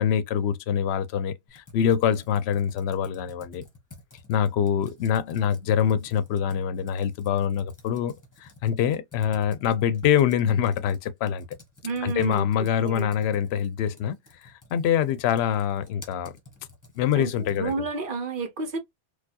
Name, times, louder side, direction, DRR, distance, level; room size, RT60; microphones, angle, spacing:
voice 1, 0.0-3.6 4.3-8.1 8.4-11.4 12.0-14.2 14.4-16.3 17.0-17.7, left 8 dB, 70° left, 0.8 m, -25 dB
Computer keyboard, 1.5-17.9, left 2 dB, 15° left, 1.2 m, -50 dB
voice 2, 11.8-13.1 17.2-18.8, right 4 dB, 50° right, 0.9 m, -31 dB
4.4 x 2.3 x 2.7 m
omnidirectional pair, 1.2 m